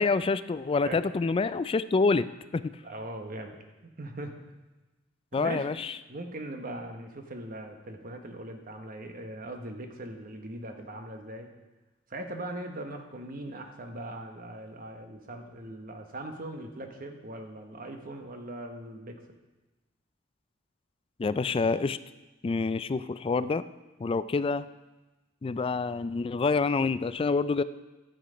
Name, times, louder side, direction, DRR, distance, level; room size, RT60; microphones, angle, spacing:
voice 1, 0.0-2.3 2.5-2.7 5.3-5.9 21.2-22.0 22.4-23.6 24.0-24.6 25.4-27.6, left 4 dB, 25° left, 14 dB, 0.3 m, -27 dB
voice 2, 2.8-3.6 4.0-4.4 5.3-5.7 6.1-11.5 12.1-19.2, right 1 dB, 45° right, 5 dB, 1.2 m, -40 dB
11.5 x 7.8 x 5.1 m, 1.1 s
head